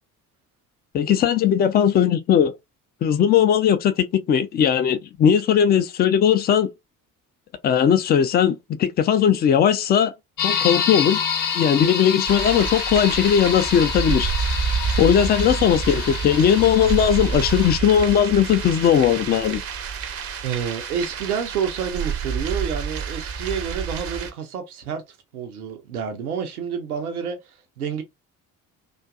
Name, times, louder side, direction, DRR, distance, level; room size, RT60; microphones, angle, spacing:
voice 1, 0.9-2.5 3.0-6.7 7.6-10.1 10.4-11.2 11.5-14.3 15.0-19.6, left 8 dB, 25° left, 0.3 m, -18 dB
sound 1, 10.4-17.8, left 7 dB, 50° left, 0.7 m, -27 dB
sound 2, 12.3-24.3, right 6 dB, 35° right, 0.6 m, -28 dB
voice 2, 20.4-25.0 25.3-28.0, right 7 dB, 80° right, 0.6 m, -29 dB
2.5 x 2.3 x 2.3 m
figure-of-eight pair, 50°, 44 cm